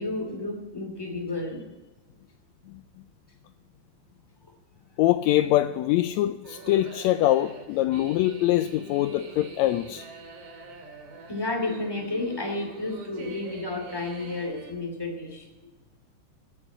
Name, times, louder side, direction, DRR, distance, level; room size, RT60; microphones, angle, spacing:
voice 1, 0.0-1.7 11.3-15.5, left 2 dB, 10° left, 2.2 m, -31 dB
voice 2, 5.0-10.1, left 14 dB, 85° left, 1.5 m, -23 dB
sound 1, 6.4-14.7, right 3 dB, 90° right, 4.0 m, -44 dB
16.5 x 6.5 x 8.7 m
omnidirectional pair, 3.7 m